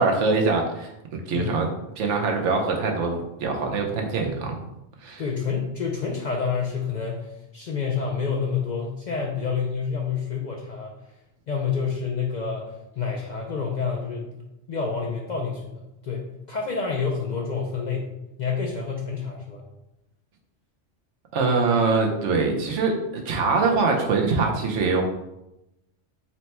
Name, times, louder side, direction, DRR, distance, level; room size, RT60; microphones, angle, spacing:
voice 1, 0.0-1.7 2.0-4.6 5.0-5.2 21.3-25.0, right 4 dB, 80° right, 2 dB, 1.0 m, -23 dB
voice 2, 5.2-10.9 11.5-18.1 18.4-19.6, left 5 dB, 60° left, -1 dB, 0.5 m, -28 dB
4.3 x 2.1 x 4.1 m, 0.89 s
omnidirectional pair, 1.2 m